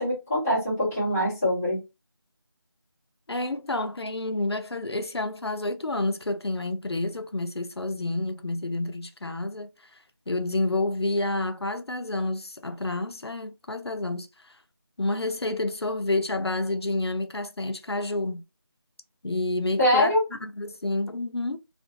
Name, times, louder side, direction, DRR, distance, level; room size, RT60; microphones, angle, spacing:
voice 1, 0.0-1.8 19.8-20.2, left 1 dB, 5° left, 0.7 m, -23 dB
voice 2, 3.3-10.0 10.3-14.6 15.0-18.4 19.2-20.1 20.4-21.6, left 2 dB, 85° left, 0.6 m, -29 dB
2.6 x 2.4 x 2.6 m
figure-of-eight pair, 170°, 13 cm